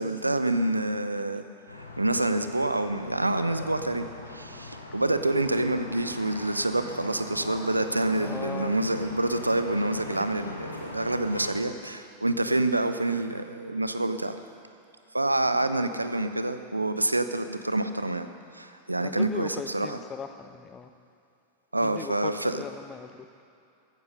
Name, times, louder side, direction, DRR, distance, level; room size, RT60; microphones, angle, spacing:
voice 1, 0.0-1.4 2.0-14.3 15.1-18.3 18.5-20.0 21.7-22.6, right 2 dB, 85° right, 10 dB, 0.7 m, -27 dB
sound 1, 1.7-11.5, left 2 dB, 80° left, 1.9 m, -41 dB
voice 2, 8.1-8.7 19.0-20.9 21.8-23.3, left 6 dB, 20° left, 10 dB, 0.9 m, -39 dB
15.5 x 12.0 x 6.5 m, 2.6 s
figure-of-eight pair, 90°, 0 cm